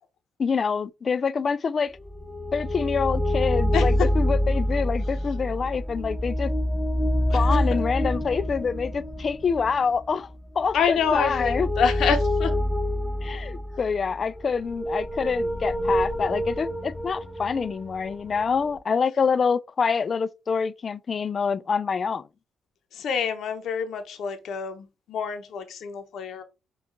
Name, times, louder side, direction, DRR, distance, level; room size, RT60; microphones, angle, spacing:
voice 1, 0.4-1.9 2.5-6.5 7.3-10.3 10.6-11.7 13.2-22.2, left 5 dB, 40° left, 0.3 m, -26 dB
sound 1, 2.0-18.8, equal, ahead, 0.6 m, -27 dB
voice 2, 7.3-7.8 10.7-12.5 22.9-26.4, left 6 dB, 70° left, 0.7 m, -27 dB
5.1 x 2.3 x 3.7 m
cardioid pair, 90°, 0 cm